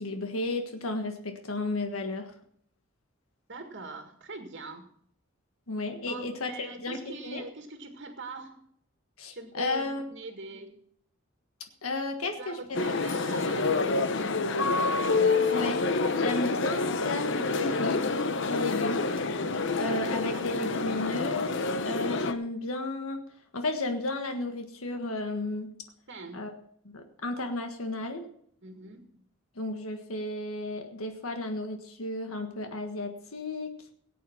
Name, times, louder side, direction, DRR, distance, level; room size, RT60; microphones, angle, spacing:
voice 1, 0.0-2.3 5.7-7.4 9.2-10.1 11.8-12.8 15.5-15.8 16.1-18.1 18.4-19.1 19.7-23.2 23.5-25.7 26.3-26.5 26.8-28.3 29.5-33.7, left 2 dB, 85° left, 5 dB, 1.6 m, -33 dB
voice 2, 3.5-4.9 6.1-8.7 9.3-10.8 12.4-13.9 14.4-15.0 26.1-26.5 28.6-29.2, right 3 dB, 55° right, 4 dB, 1.8 m, -42 dB
sound 1, 12.7-22.3, left 3 dB, 60° left, 0.9 m, -27 dB
17.5 x 8.5 x 5.7 m, 0.65 s
head